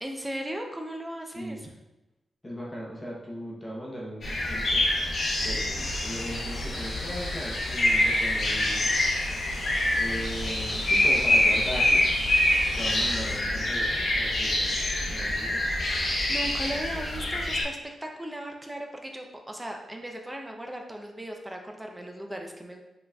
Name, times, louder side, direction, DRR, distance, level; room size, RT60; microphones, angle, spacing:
voice 1, 0.0-1.7 12.6-13.7 14.4-14.5 15.9-22.8, right 1 dB, 10° right, 2 dB, 0.5 m, -38 dB
voice 2, 1.3-1.7 2.4-4.8 5.4-8.9 10.0-12.1 12.7-14.8 15.1-15.8, equal, 15° left, -4 dB, 0.8 m, -38 dB
sound 1, 4.2-17.6, left 1 dB, 45° left, 0.9 m, -26 dB
sound 2, 5.8-13.4, left 2 dB, 70° left, 0.8 m, -44 dB
5.6 x 3.9 x 2.3 m, 1.0 s
wide cardioid pair, 155°, 0 cm